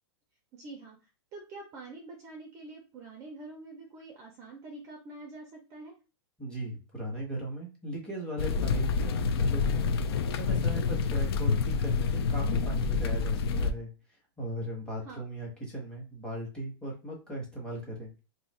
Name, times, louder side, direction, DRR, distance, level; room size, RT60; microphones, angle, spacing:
voice 1, 0.5-5.9 15.0-15.2, right 2 dB, 20° right, 1 dB, 0.5 m, -46 dB
voice 2, 6.4-9.8 10.3-13.9 14.4-18.1, right 1 dB, 5° left, -3 dB, 1.0 m, -38 dB
pluie-orage, 8.4-13.7, left 5 dB, 65° left, 0.5 m, -28 dB
2.7 x 2.4 x 4.1 m, 0.32 s
supercardioid pair, 170°, 14 cm